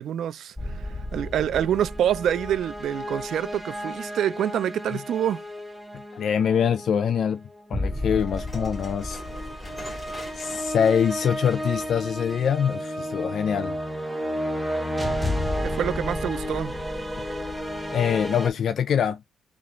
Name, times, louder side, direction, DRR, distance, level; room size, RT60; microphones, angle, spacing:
voice 1, 0.0-5.5 15.6-16.8, right 10 dB, 70° right, 0.3 m, -26 dB
sound 1, 0.6-18.5, equal, 5° right, 0.9 m, -32 dB
voice 2, 6.1-9.2 10.3-13.8 17.9-19.2, left 8 dB, 60° left, 0.3 m, -24 dB
sound 2, 8.2-13.3, left 1 dB, 20° left, 1.9 m, -44 dB
3.9 x 2.4 x 3.0 m
cardioid pair, 90°, 0 cm